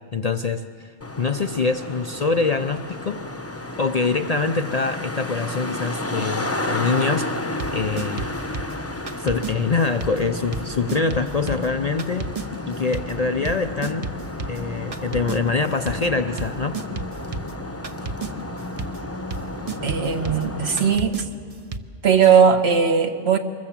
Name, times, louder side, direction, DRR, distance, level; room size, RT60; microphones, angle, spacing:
voice 1, 0.1-3.2 3.8-7.3 7.7-8.2 9.2-12.3 12.7-14.1 14.5-16.8, left 4 dB, 45° left, 8 dB, 0.6 m, -24 dB
Traffic noise roadway noise, 1.0-21.0, left 2 dB, 15° left, 0.8 m, -32 dB
sound 1, 7.6-9.5 10.0-21.8, right 3 dB, 35° right, 0.8 m, -34 dB
voice 2, 19.8-21.3 22.0-23.4, right 6 dB, 60° right, 7 dB, 1.5 m, -18 dB
24.5 x 21.5 x 7.4 m, 2.2 s
omnidirectional pair, 1.2 m